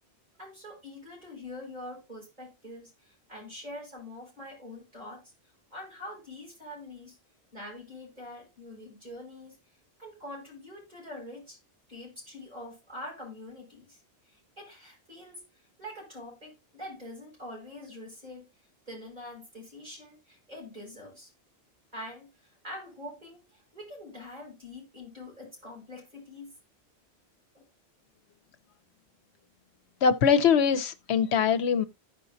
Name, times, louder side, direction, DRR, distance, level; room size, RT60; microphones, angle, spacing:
voice 1, 0.4-5.3 5.7-7.2 7.5-9.6 10.0-11.6 11.9-14.0 14.3-15.4 15.8-18.5 18.9-21.3 21.9-26.5 27.5-27.6, left 1 dB, 40° right, 7.0 m, -44 dB
voice 2, 30.0-31.8, left 7 dB, 85° left, 1.0 m, -22 dB
15.0 x 5.4 x 2.7 m
omnidirectional pair, 1.1 m